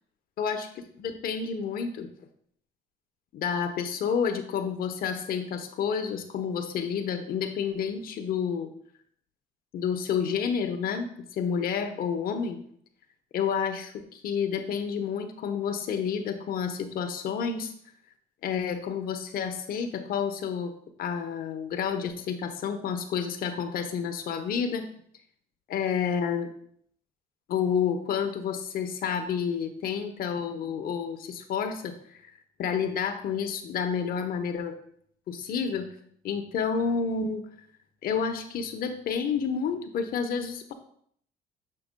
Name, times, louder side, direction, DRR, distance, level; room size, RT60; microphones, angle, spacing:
voice 1, 0.4-2.1 3.3-8.7 9.7-12.6 13.3-17.7 18.4-20.7 21.0-24.9 25.7-26.5 27.5-32.0 32.6-34.8 35.3-35.9 36.2-37.4 38.0-40.7, left 6 dB, 60° left, 7 dB, 0.9 m, -30 dB
7.1 x 6.5 x 2.2 m, 0.63 s
cardioid pair, 110°, 17 cm